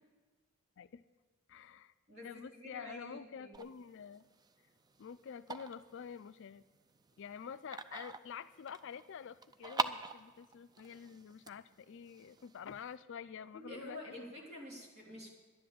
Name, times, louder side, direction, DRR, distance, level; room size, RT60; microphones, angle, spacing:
voice 1, 1.5-1.9 2.2-4.2 5.0-6.6 7.2-14.1, left 7 dB, 55° left, 14 dB, 0.4 m, -48 dB
voice 2, 2.1-3.5 13.5-15.3, left 1 dB, 50° right, -3 dB, 3.5 m, -49 dB
sound 1, 3.5-12.9, right 4 dB, 20° right, 0.4 m, -45 dB
11.5 x 10.0 x 7.6 m, 1.3 s
head